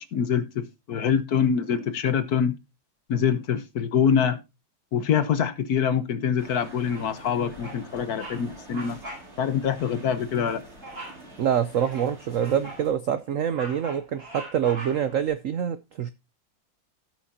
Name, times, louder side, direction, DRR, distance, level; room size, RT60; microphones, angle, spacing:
voice 1, 0.1-2.6 3.1-4.4 4.9-9.0 9.4-10.6, left 7 dB, 60° left, 1.3 m, -25 dB
sound 1, 6.4-12.9, right 1 dB, 35° right, 4.0 m, -47 dB
Bird vocalization bird call bird song, 6.9-7.3 7.6-7.8 8.1-8.4 8.7-9.3 9.6-9.8 10.8-11.2 11.7-12.9 13.3-15.2, right 2 dB, 50° right, 5.1 m, -41 dB
voice 2, 11.4-16.1, right 9 dB, 75° right, 0.7 m, -26 dB
17.0 x 6.2 x 2.8 m
omnidirectional pair, 2.1 m